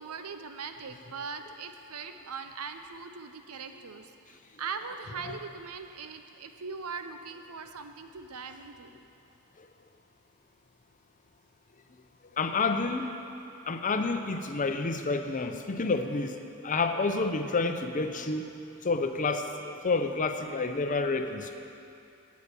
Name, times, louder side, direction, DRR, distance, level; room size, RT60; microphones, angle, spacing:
voice 1, 0.0-8.9, right 5 dB, 75° right, 8 dB, 0.7 m, -40 dB
voice 2, 12.4-13.1 13.7-16.4 16.6-18.4 18.8-21.6, left 3 dB, 35° left, 7 dB, 0.7 m, -29 dB
8.9 x 8.3 x 8.6 m, 2.6 s
head